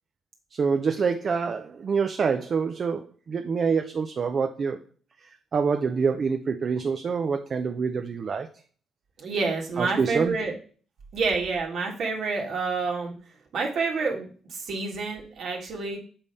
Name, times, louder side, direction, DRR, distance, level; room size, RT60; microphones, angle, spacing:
voice 1, 0.5-4.8 5.2-8.5 9.8-10.4, right 5 dB, 45° right, 0.5 m, -26 dB
voice 2, 9.2-10.5 11.1-13.1 13.5-16.0, right 4 dB, 70° right, 1.8 m, -28 dB
7.2 x 3.5 x 5.4 m
cardioid pair, 90°, 0 cm